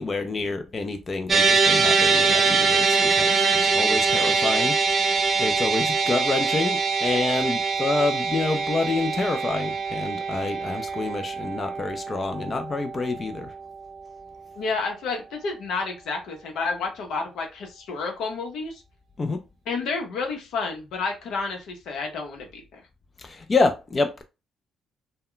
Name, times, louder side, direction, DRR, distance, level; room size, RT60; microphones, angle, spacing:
voice 1, 0.0-3.5 3.7-13.5 19.2-19.4 23.2-24.2, left 3 dB, 35° left, 0.4 m, -27 dB
sound 1, 1.3-13.7, right 4 dB, 40° right, 0.6 m, -23 dB
voice 2, 14.6-18.8 19.7-22.8, left 4 dB, 80° left, 0.7 m, -30 dB
2.2 x 2.1 x 3.7 m
cardioid pair, 90°, 0 cm